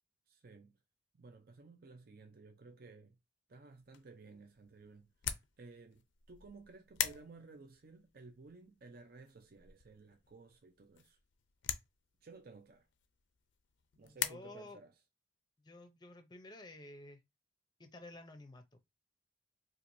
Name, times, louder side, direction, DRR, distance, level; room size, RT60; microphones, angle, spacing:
voice 1, 0.3-0.8 1.1-3.2 3.5-5.1 5.6-6.0 6.3-11.2 12.2-12.9 14.0-14.9, right 3 dB, 50° right, 0.5 m, -56 dB
sound 1, 3.7-14.3, left 10 dB, 75° left, 0.5 m, -44 dB
voice 2, 14.0-14.8 15.6-17.2 17.8-18.8, left 2 dB, 20° left, 0.6 m, -52 dB
4.5 x 2.5 x 2.6 m
head